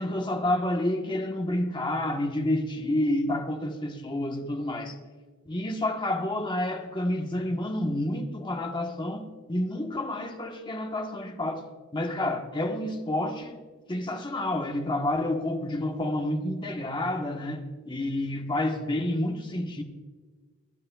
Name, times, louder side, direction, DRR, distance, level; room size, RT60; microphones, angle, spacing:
voice 1, 0.0-5.0 5.5-11.7 11.9-13.6 13.9-19.8, left 1 dB, 25° left, 1.1 m, -29 dB
24.0 x 9.6 x 2.3 m
head